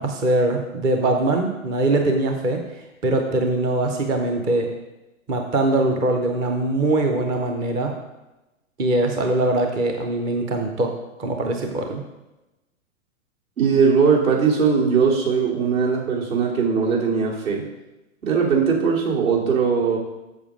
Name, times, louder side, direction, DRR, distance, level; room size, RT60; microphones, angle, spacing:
voice 1, 0.0-2.6 3.0-4.7 5.3-7.9 8.8-10.9 11.2-12.0, right 2 dB, 10° right, 3 dB, 0.4 m, -22 dB
voice 2, 13.6-17.7 18.2-20.0, right 5 dB, 75° right, -3 dB, 2.9 m, -20 dB
7.1 x 6.8 x 5.0 m, 1.0 s
hypercardioid pair, 120°, 41 cm